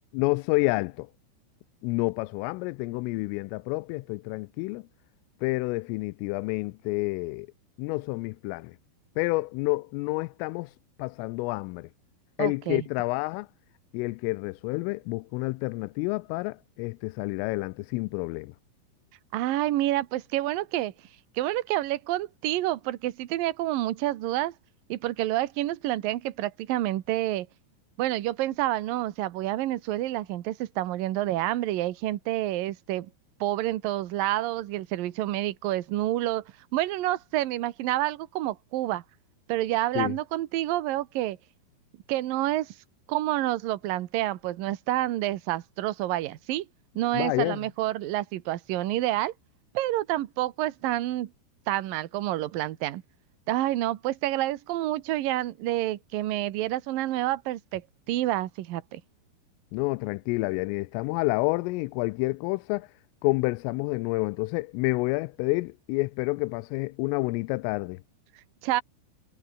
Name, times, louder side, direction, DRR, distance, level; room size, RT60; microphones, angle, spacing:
voice 1, 0.1-1.1 1.8-4.8 5.4-7.5 7.8-8.8 9.2-10.7 11.0-11.9 12.4-13.5 13.9-18.5 40.0-40.2 47.1-47.6 59.7-62.9 63.2-68.0, left 24 dB, 90° left, 3.2 m, -29 dB
voice 2, 12.4-12.8 19.3-20.9 21.4-24.5 24.9-27.5 28.0-33.1 33.4-36.4 36.7-39.0 39.5-41.4 42.1-42.7 43.1-46.7 47.0-49.3 49.7-51.3 51.7-53.0 53.5-57.8 58.1-59.0 68.6-68.8, right 15 dB, 75° right, 2.2 m, -28 dB
omnidirectional pair, 5.7 m